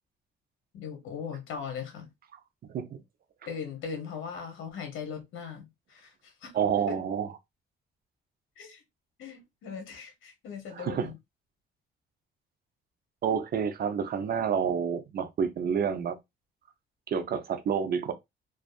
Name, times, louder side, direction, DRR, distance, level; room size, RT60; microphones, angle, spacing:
voice 1, 0.7-2.1 3.5-6.5 6.9-7.0 8.6-8.8 9.2-11.1, left 6 dB, 80° left, 0.9 m, -39 dB
voice 2, 2.7-3.0 6.5-7.3 10.8-11.1 13.2-16.2 17.1-18.1, right 7 dB, 50° right, 0.5 m, -29 dB
2.6 x 2.3 x 2.3 m
cardioid pair, 90°, 20 cm